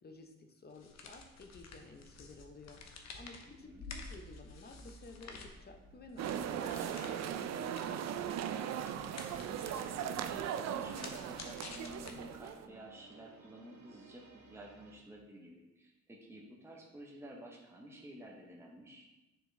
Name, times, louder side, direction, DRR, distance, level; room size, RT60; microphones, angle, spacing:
voice 1, 0.0-2.8 3.1-8.6, left 3 dB, 30° left, 5 dB, 0.8 m, -54 dB
sound 1, 0.7-12.6, left 4 dB, 60° left, 0.9 m, -52 dB
voice 2, 3.5-3.9 9.4-19.1, equal, 10° right, -2 dB, 1.0 m, -52 dB
sound 2, 5.4-15.0, right 4 dB, 80° right, 1.3 m, -63 dB
sound 3, 6.2-12.7, right 9 dB, 65° right, 0.5 m, -38 dB
6.9 x 4.5 x 3.3 m, 1.0 s
cardioid pair, 90°, 30 cm